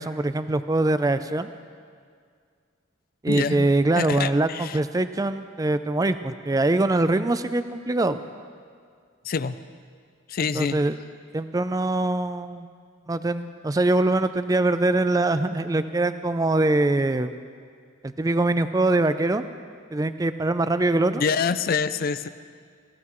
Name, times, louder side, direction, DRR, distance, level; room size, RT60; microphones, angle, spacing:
voice 1, 0.0-1.5 3.2-8.2 10.4-11.0 11.3-12.7 13.1-17.3 18.0-19.4 19.9-21.2, right 2 dB, 20° right, 11 dB, 0.4 m, -23 dB
voice 2, 3.3-3.7 4.0-4.8 9.3-9.5 10.3-10.8 21.1-22.3, left 5 dB, 45° left, 14 dB, 0.4 m, -26 dB
18.0 x 16.0 x 3.1 m, 2.1 s
head